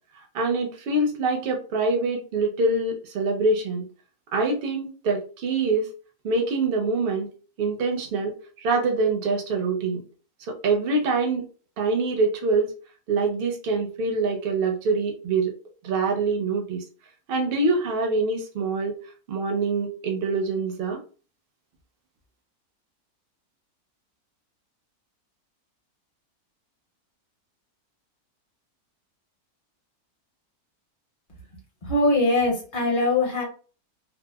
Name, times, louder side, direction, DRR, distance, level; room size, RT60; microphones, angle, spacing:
voice 1, 0.3-3.9 4.3-5.9 6.2-7.3 7.6-10.0 10.5-11.5 11.8-12.7 13.1-15.5 15.8-16.8 17.3-19.0 19.3-21.0, right 3 dB, 60° right, 3 dB, 0.6 m, -25 dB
voice 2, 31.8-33.4, left 2 dB, 40° left, -1 dB, 0.9 m, -22 dB
2.8 x 2.1 x 2.3 m, 0.37 s
omnidirectional pair, 1.6 m